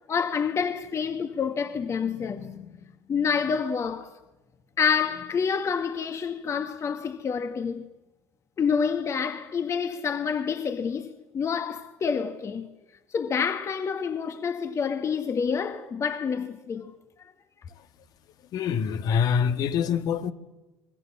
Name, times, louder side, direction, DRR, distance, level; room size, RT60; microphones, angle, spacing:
voice 1, 0.1-2.6 3.1-4.1 4.8-7.9 8.6-12.7 13.1-16.9, left 6 dB, 40° left, 1.6 m, -28 dB
voice 2, 18.5-20.3, left 7 dB, 55° left, 1.6 m, -25 dB
26.0 x 20.5 x 7.4 m
hypercardioid pair, 75°, 8 cm